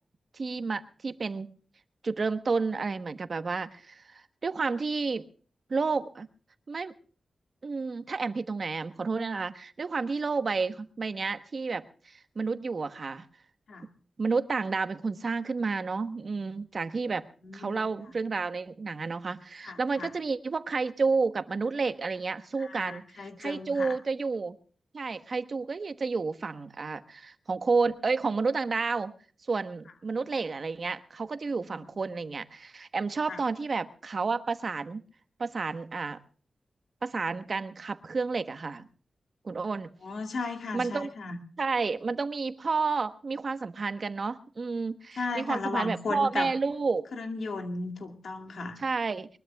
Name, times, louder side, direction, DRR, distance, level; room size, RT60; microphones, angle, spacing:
voice 1, 0.3-1.5 2.0-5.2 5.7-6.3 6.7-6.9 7.6-13.2 14.2-17.3 17.5-24.6 24.9-29.1 29.5-35.0 35.4-36.2 37.0-38.8 39.4-39.9 40.7-41.1 41.6-47.0 48.8-49.3, right 4 dB, 50° right, 10 dB, 1.1 m, -30 dB
voice 2, 17.4-17.9 19.6-20.1 22.6-24.0 33.3-33.4 40.0-41.4 45.2-46.5 47.1-48.8, left 3 dB, 80° left, 5 dB, 2.4 m, -35 dB
22.5 x 21.0 x 2.3 m, 0.40 s
wide cardioid pair, 125°, 0 cm